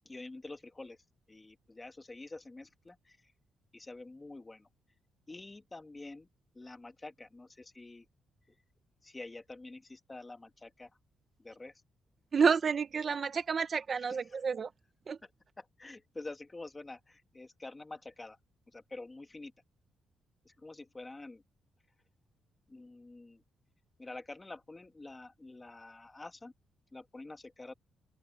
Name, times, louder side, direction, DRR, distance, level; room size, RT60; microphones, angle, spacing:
voice 1, 0.0-1.0 1.3-3.3 3.7-4.7 5.3-6.3 6.5-8.0 8.5-8.6 9.0-10.9 11.4-11.7 15.6-18.4 18.7-19.5 20.4-21.4 22.7-23.4 24.0-26.5 26.9-27.7, left 2 dB, 15° left, 1.5 m, -47 dB
voice 2, 12.3-14.7 15.1-15.2, right 6 dB, 35° right, 0.7 m, -29 dB
open air
cardioid pair, 145°, 0 cm